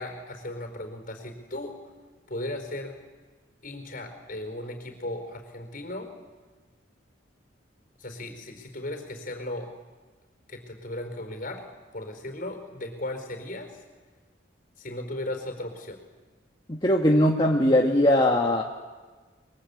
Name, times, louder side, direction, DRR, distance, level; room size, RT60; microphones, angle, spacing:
voice 1, 0.0-1.8 2.3-3.0 3.6-6.1 8.0-9.7 10.5-11.7 11.9-13.8 14.8-16.0, left 1 dB, 45° left, 6 dB, 4.5 m, -36 dB
voice 2, 16.7-18.6, left 1 dB, 25° left, 0 dB, 1.5 m, -20 dB
28.5 x 22.5 x 8.5 m, 1.4 s
head